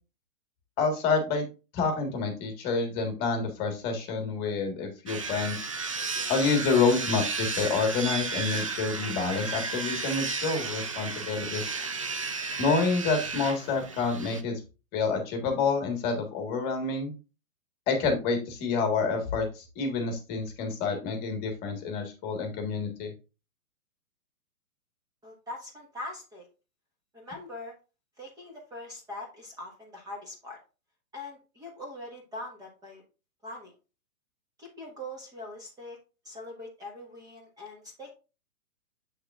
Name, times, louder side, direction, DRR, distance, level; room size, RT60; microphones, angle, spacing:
voice 1, 0.8-1.4 1.7-5.7 6.3-11.8 12.6-14.6 14.9-17.1 17.9-23.1, left 4 dB, 20° left, 4 dB, 1.5 m, -28 dB
sound 1, 5.1-14.4, right 4 dB, 25° right, 0.4 m, -33 dB
voice 2, 25.2-26.5 27.1-27.7 28.2-30.6 31.1-33.0 33.4-33.7 34.6-36.0 36.2-38.1, left 1 dB, 10° right, -1 dB, 1.3 m, -42 dB
7.9 x 6.6 x 2.4 m, 0.31 s
hypercardioid pair, 155°, 42 cm